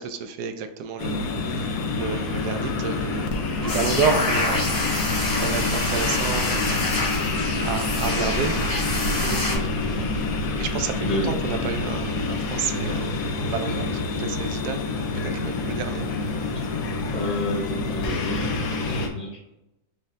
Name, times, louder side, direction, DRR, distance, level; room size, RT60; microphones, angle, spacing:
voice 1, 0.0-4.8 5.3-8.5 9.8-10.1 10.6-13.1 13.4-13.9 14.2-16.5, right 6 dB, 90° right, 8 dB, 1.1 m, -31 dB
sound 1, 1.0-19.1, left 3 dB, 90° left, 1.3 m, -27 dB
sound 2, 3.3-14.0, right 4 dB, 45° right, 1.0 m, -36 dB
sound 3, 3.7-9.5, left 2 dB, 65° left, 1.9 m, -27 dB
voice 2, 9.2-10.1 11.0-11.3 17.1-19.6, equal, 5° left, -3 dB, 0.7 m, -31 dB
5.5 x 2.1 x 3.8 m, 0.91 s
omnidirectional pair, 1.6 m